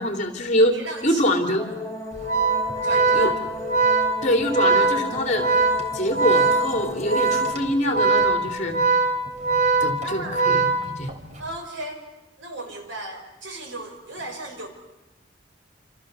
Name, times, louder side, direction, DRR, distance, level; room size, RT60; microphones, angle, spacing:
voice 1, 0.0-0.8 1.0-1.6 3.1-3.3 4.2-5.5 5.9-8.8 9.8-11.1, equal, 40° left, 5 dB, 3.0 m, -24 dB
voice 2, 0.7-1.2 2.8-3.3 10.0-10.4 11.4-12.0 12.4-14.7, right 2 dB, 85° right, 4 dB, 5.1 m, -35 dB
sound 1, 1.6-7.5, left 2 dB, 15° left, 1.8 m, -35 dB
Organ, 2.2-11.3, right 3 dB, 40° right, 2.6 m, -21 dB
27.5 x 27.0 x 6.8 m, 1.0 s
head